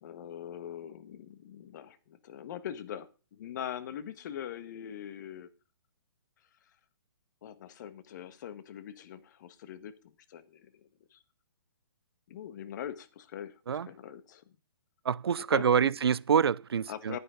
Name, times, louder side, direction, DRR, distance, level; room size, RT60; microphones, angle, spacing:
voice 1, 0.0-5.5 7.4-9.9 10.3-11.2 12.3-14.4 15.5-15.9 16.9-17.2, left 10 dB, 50° left, 1.5 m, -42 dB
voice 2, 15.1-17.2, right 7 dB, 80° right, 0.4 m, -26 dB
11.0 x 10.5 x 3.9 m
hypercardioid pair, 135°, 13 cm